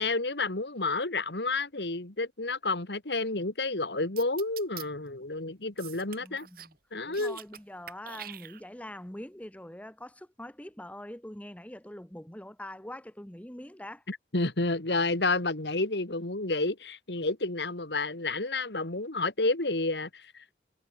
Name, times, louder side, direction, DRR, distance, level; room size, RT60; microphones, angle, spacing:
voice 1, 0.0-6.5 6.9-7.4 14.1-20.4, left 3 dB, 75° left, 2.3 m, -30 dB
sound 1, 4.2-4.8 5.8-6.7 7.0-7.6 7.9-8.9, right 11 dB, 55° right, 2.5 m, -44 dB
voice 2, 6.2-6.8 7.0-14.0, left 1 dB, 10° left, 1.4 m, -44 dB
head